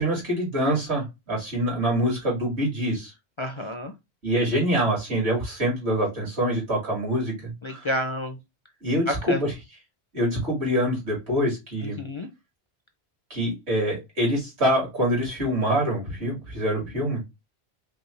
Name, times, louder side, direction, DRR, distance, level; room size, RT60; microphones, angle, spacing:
voice 1, 0.0-3.1 4.2-7.9 8.8-9.5 10.1-12.0 13.3-17.2, equal, 80° right, -2 dB, 2.5 m, -25 dB
voice 2, 3.4-3.9 7.6-8.4 9.1-9.4 11.8-12.3, left 1 dB, 45° left, 5 dB, 0.4 m, -29 dB
5.4 x 2.2 x 3.1 m, 0.22 s
omnidirectional pair, 1.1 m